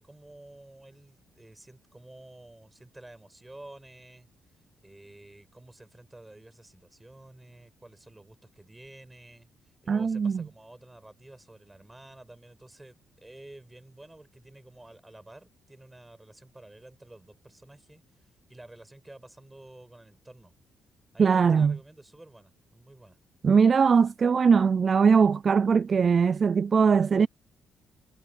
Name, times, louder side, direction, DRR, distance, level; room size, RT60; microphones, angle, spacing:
voice 1, 0.0-4.3 4.8-9.5 9.8-18.0 18.5-20.5 21.1-23.2, right 1 dB, 10° right, 6.6 m, -50 dB
voice 2, 9.9-10.4 21.2-21.8 23.4-27.3, right 6 dB, 45° right, 0.3 m, -21 dB
cardioid pair, 90°, 0 cm